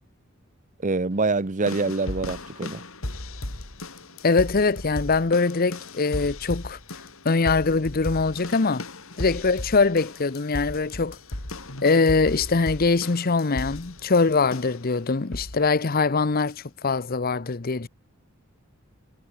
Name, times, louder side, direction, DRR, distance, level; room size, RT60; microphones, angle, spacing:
voice 1, 0.8-2.8, right 3 dB, 40° right, 0.9 m, -25 dB
sound 1, 1.7-14.9 15.3-15.7 16.5-16.6, left 1 dB, 80° left, 3.7 m, -36 dB
voice 2, 4.2-6.8 7.2-8.8 9.2-11.2 11.8-17.9, left 4 dB, 45° left, 0.8 m, -22 dB
head